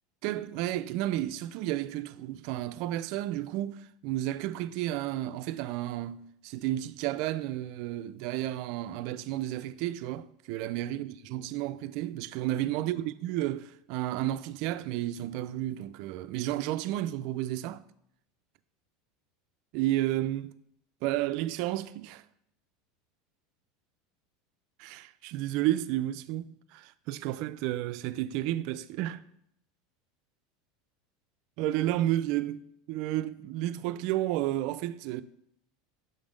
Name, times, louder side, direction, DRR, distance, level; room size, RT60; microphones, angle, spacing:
voice 1, 0.2-17.8 19.7-20.6 21.0-22.2 24.8-29.2 31.6-32.6 32.9-35.2, right 14 dB, 55° right, 0.3 m, -32 dB
6.7 x 3.7 x 5.0 m
supercardioid pair, 145°, 0 cm